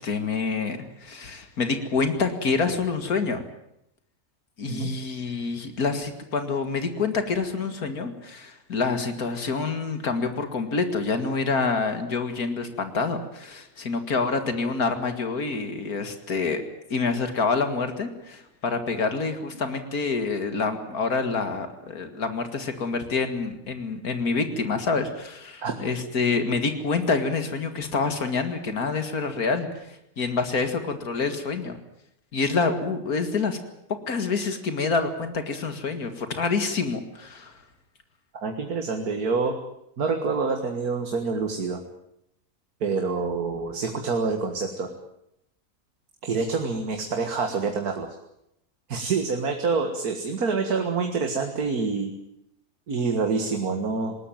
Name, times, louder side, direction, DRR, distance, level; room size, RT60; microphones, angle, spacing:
voice 1, 0.0-3.4 4.6-16.6 16.9-31.8 32.3-33.6 34.1-37.6, left 4 dB, 75° left, 8 dB, 2.4 m, -27 dB
voice 2, 38.3-39.5 40.0-41.8 42.8-44.9 46.2-48.1 48.9-52.1 52.9-54.2, right 4 dB, 80° right, 5 dB, 2.2 m, -26 dB
20.5 x 18.5 x 9.2 m, 0.79 s
omnidirectional pair, 1.6 m